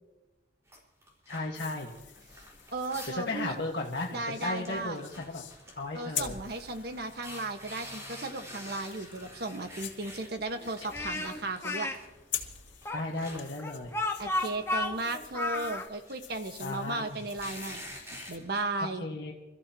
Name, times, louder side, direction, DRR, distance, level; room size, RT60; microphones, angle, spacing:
sound 1, 0.7-3.3 3.6-3.7 3.9-11.3 11.7-18.6, equal, 15° right, 4.8 m, -48 dB
voice 1, 1.3-1.9 3.1-5.4 5.8-6.4 12.9-13.9 16.6-17.2 19.0-19.3, left 2 dB, 60° left, -1 dB, 1.6 m, -35 dB
sound 2, 1.5-18.4, left 10 dB, 85° left, 2.3 m, -45 dB
voice 2, 2.7-3.5 4.1-5.0 5.9-11.9 14.2-17.9 18.3-19.0, right 2 dB, 55° right, 6 dB, 1.4 m, -35 dB
Speech, 10.9-12.0 12.8-15.9, left 2 dB, 15° left, 1.3 m, -32 dB
28.0 x 14.5 x 3.0 m, 1.0 s
head